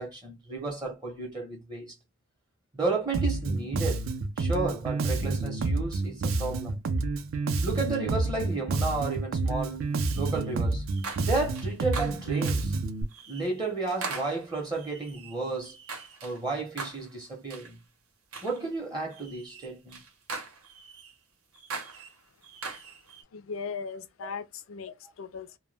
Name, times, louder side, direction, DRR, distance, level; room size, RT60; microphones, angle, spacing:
voice 1, 0.0-1.9 2.7-4.0 4.4-6.8 7.6-10.8 11.2-12.7 13.3-15.8 16.2-17.8 18.4-20.0 24.2-24.3, right 3 dB, 20° right, 0.6 m, -32 dB
Bass guitar, 3.1-13.0, right 3 dB, 65° right, 0.4 m, -29 dB
sound 1, 10.0-10.5 10.9-12.7 13.1-13.5 13.9-16.4 16.8-17.1 17.5-17.7 18.3-18.6 19.1-21.1 21.5-23.2, right 4 dB, 85° right, 0.8 m, -41 dB
voice 2, 23.3-25.6, left 5 dB, 70° left, 0.4 m, -38 dB
2.1 x 2.1 x 3.2 m
head